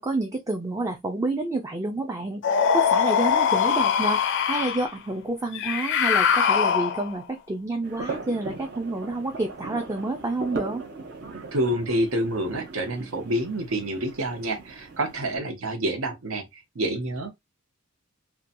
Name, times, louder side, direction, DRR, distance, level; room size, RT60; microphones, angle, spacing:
voice 1, 0.0-4.2 4.5-10.8, right 2 dB, 15° right, 0.4 m, -29 dB
sound 1, 2.4-4.9 5.5-7.2, left 7 dB, 60° left, 0.4 m, -22 dB
sound 2, 7.8-15.4, right 3 dB, 55° right, 0.7 m, -39 dB
voice 2, 11.5-17.3, right 1 dB, 90° right, 0.9 m, -28 dB
2.7 x 2.2 x 2.5 m
head